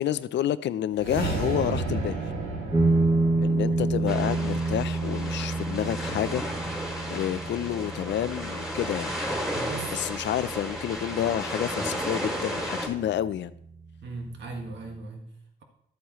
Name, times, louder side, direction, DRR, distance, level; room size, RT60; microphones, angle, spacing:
voice 1, 0.0-2.2 3.4-6.6 7.1-9.1 9.9-13.5, left 11 dB, 65° left, 0.5 m, -29 dB
sound 1, 0.9-5.3, right 2 dB, 90° right, 2.2 m, -32 dB
sound 2, 2.7-11.7, right 2 dB, 20° right, 2.2 m, -28 dB
sound 3, 4.1-12.9, equal, ahead, 2.9 m, -34 dB
voice 2, 9.5-10.0 14.0-15.6, right 3 dB, 65° right, 1.8 m, -38 dB
13.0 x 8.1 x 3.1 m
cardioid pair, 90°, 20 cm